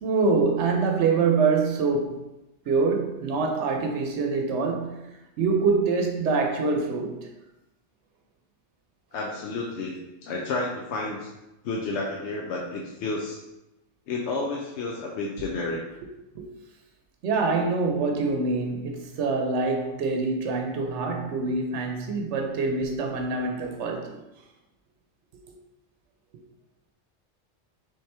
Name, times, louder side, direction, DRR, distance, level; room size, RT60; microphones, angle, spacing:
voice 1, 0.0-2.2 2.7-7.3 16.3-16.5 17.2-24.2, right 4 dB, 85° right, 2 dB, 0.9 m, -25 dB
voice 2, 9.1-11.3 11.6-13.4 14.1-15.8, left 3 dB, 80° left, -2 dB, 0.9 m, -31 dB
3.5 x 3.3 x 4.2 m, 0.95 s
omnidirectional pair, 1.2 m